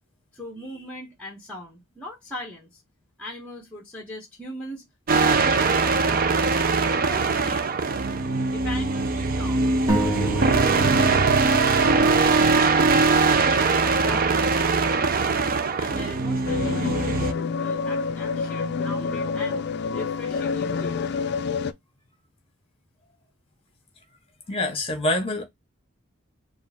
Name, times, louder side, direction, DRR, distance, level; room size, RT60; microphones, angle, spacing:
voice 1, 0.3-2.8 3.2-7.8 8.5-9.6 9.9-15.2 15.8-19.6 19.9-21.1, left 1 dB, 5° left, 1.1 m, -40 dB
sound 1, 5.1-17.3, right 4 dB, 40° right, 0.4 m, -21 dB
sound 2, 9.9-13.5, right 1 dB, 20° right, 1.3 m, -30 dB
sound 3, 16.4-21.7, left 5 dB, 50° left, 0.4 m, -27 dB
voice 2, 24.5-25.4, left 2 dB, 25° left, 1.4 m, -25 dB
4.5 x 2.6 x 3.5 m
head